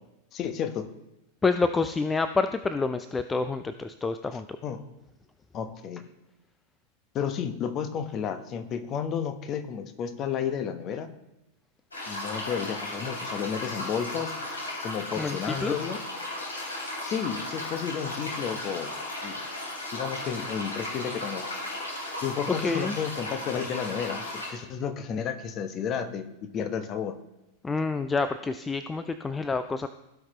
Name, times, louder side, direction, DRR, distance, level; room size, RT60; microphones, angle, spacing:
voice 1, 0.3-0.9 4.6-4.8 5.5-6.0 7.1-11.1 12.1-14.3 14.8-16.0 17.0-18.9 19.2-19.4 19.9-21.4 22.2-27.1, left 7 dB, 35° left, 8 dB, 1.0 m, -32 dB
voice 2, 1.4-4.6 15.1-15.7 22.5-23.0 27.6-29.9, left 4 dB, 15° left, 11 dB, 0.4 m, -28 dB
sound 1, 11.9-24.5, left 1 dB, 75° left, 3.9 m, -35 dB
16.5 x 5.7 x 3.2 m, 0.93 s
figure-of-eight pair, 90°, 0 cm